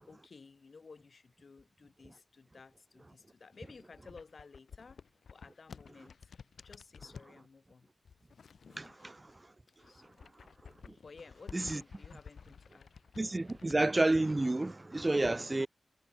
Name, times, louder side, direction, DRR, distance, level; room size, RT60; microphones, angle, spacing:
voice 1, 0.0-5.0 5.3-6.3 6.6-7.9 8.8-9.0 9.8-10.3 11.0-12.9 15.4-15.5, left 4 dB, 55° left, 5.5 m, -55 dB
sound 1, 3.5-7.3 8.0-9.4 9.7-13.8, left 6 dB, 85° left, 3.6 m, -53 dB
voice 2, 8.8-9.3 10.8-10.9 11.5-11.8 13.2-15.7, right 2 dB, 20° right, 1.1 m, -30 dB
wide cardioid pair, 120°, 0 cm